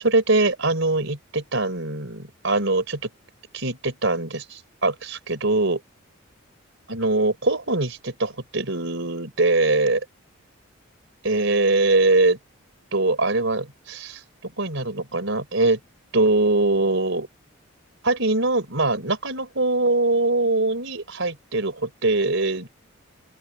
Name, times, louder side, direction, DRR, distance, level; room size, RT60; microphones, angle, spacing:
voice 1, 0.0-3.1 3.5-5.8 6.9-10.0 11.2-12.4 12.9-15.8 16.1-17.3 18.0-22.7, right 2 dB, 60° right, 4.6 m, -22 dB
open air
head